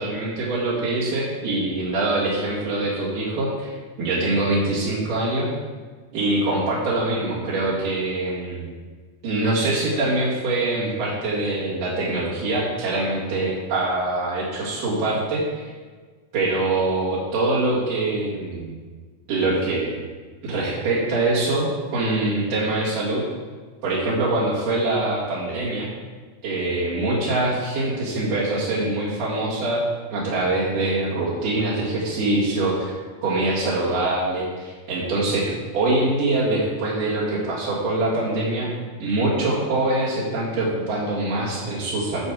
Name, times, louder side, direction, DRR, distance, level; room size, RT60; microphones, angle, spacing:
voice 1, 0.0-5.5 6.1-8.7 9.2-15.4 16.3-18.8 19.3-19.9 20.4-23.2 23.8-25.9 26.4-29.8 30.1-32.9 33.2-38.7 39.0-42.3, right 2 dB, 85° right, -8 dB, 3.7 m, -24 dB
9.5 x 4.8 x 7.3 m, 1.4 s
omnidirectional pair, 3.7 m